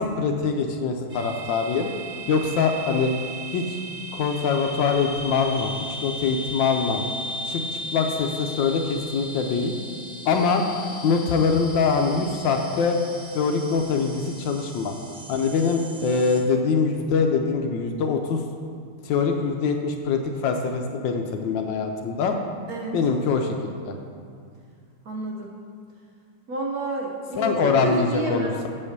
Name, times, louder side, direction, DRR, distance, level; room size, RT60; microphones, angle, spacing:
voice 1, 0.0-1.9 2.3-3.1 3.5-3.8 4.1-5.7 6.0-7.0 7.4-9.7 10.3-10.6 11.0-13.0 13.3-14.9 15.3-18.4 19.0-22.4 22.9-23.6 23.9-24.0 27.4-28.7, left 5 dB, 75° left, 4 dB, 1.2 m, -23 dB
sound 1, 1.1-16.4, equal, 35° right, 1.3 m, -37 dB
voice 2, 25.0-25.5 26.5-28.6, right 2 dB, 55° right, -1 dB, 1.2 m, -29 dB
7.8 x 5.5 x 6.6 m, 2.3 s
omnidirectional pair, 2.3 m